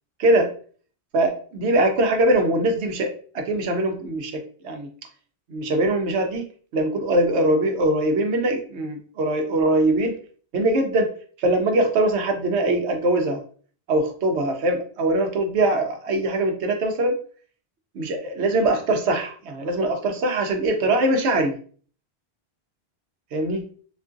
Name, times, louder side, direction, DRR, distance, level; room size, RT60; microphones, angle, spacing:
voice 1, 1.1-4.9 5.5-10.2 10.5-11.1 11.4-13.4 13.9-17.2 17.9-21.5 23.3-23.7, right 1 dB, 90° right, 5 dB, 1.0 m, -22 dB
3.7 x 2.4 x 2.5 m, 0.44 s
omnidirectional pair, 1.1 m